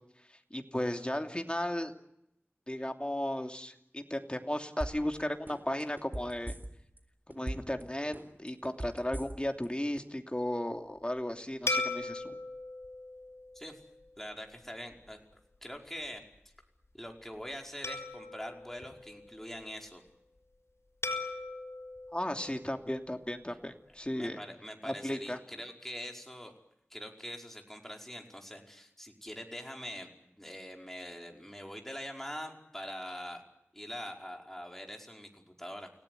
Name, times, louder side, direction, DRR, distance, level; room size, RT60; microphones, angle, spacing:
voice 1, 0.5-1.9 2.7-6.5 7.3-12.4 22.1-24.4 24.8-25.4, left 1 dB, 25° left, 5 dB, 2.9 m, -35 dB
sound 1, 4.8-5.2 5.5-7.0 7.3-7.8 8.1-9.7 10.0-10.1, right 1 dB, 45° right, 4.0 m, -39 dB
sound 2, 11.7-14.3 14.9-15.1 17.8-19.6 21.0-23.3, left 2 dB, 75° left, 5.7 m, -39 dB
voice 2, 14.2-16.2 16.9-20.0 23.9-26.5 26.9-33.4 33.7-35.9, equal, 5° left, 2 dB, 5.2 m, -44 dB
29.5 x 18.0 x 9.5 m, 0.81 s
wide cardioid pair, 45°, 5 cm